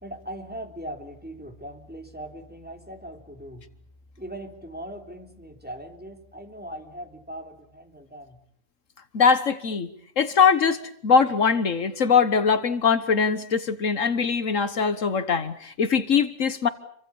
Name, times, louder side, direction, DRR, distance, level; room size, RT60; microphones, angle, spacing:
voice 1, 0.0-3.6 4.2-8.4, right 1 dB, 5° right, 4 dB, 3.6 m, -40 dB
voice 2, 9.1-9.9 10.2-16.7, left 6 dB, 70° left, 12 dB, 1.7 m, -22 dB
29.5 x 25.0 x 7.1 m, 0.66 s
omnidirectional pair, 1.4 m